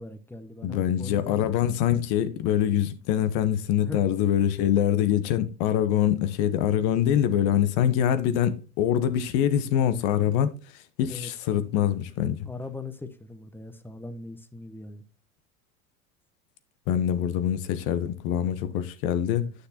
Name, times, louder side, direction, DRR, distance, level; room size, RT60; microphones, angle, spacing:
voice 1, 0.0-1.4 3.8-4.0 11.1-11.3 12.5-15.0 19.3-19.5, left 3 dB, 5° left, 0.8 m, -40 dB
voice 2, 0.6-10.5 11.0-12.4 16.9-19.5, left 10 dB, 55° left, 1.1 m, -24 dB
9.6 x 6.5 x 2.8 m
hypercardioid pair, 95°, 43 cm